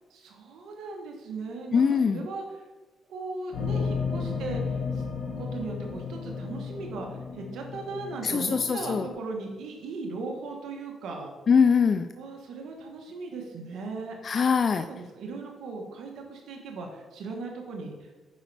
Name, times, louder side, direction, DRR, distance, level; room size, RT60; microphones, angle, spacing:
voice 1, 0.1-2.7 3.1-5.0 5.3-11.3 12.1-14.2 14.9-18.1, right 3 dB, 75° right, 1 dB, 1.2 m, -38 dB
voice 2, 1.7-2.3 8.2-9.1 11.5-12.1 14.2-14.9, left 6 dB, 45° left, 8 dB, 0.3 m, -22 dB
sound 1, 3.5-9.1, left 5 dB, 90° left, 1.6 m, -33 dB
9.1 x 5.1 x 3.4 m, 1.2 s
cardioid pair, 90°, 0 cm